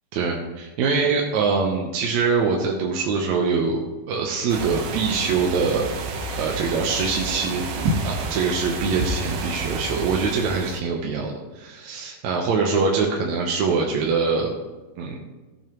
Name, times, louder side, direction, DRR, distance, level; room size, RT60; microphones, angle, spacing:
voice 1, 0.1-7.6 8.0-14.5 15.0-15.2, right 4 dB, 70° right, -1 dB, 2.0 m, -24 dB
sound 1, 4.5-10.8, right 3 dB, 85° right, 2.6 m, -29 dB
17.0 x 7.1 x 3.0 m, 1.2 s
omnidirectional pair, 3.7 m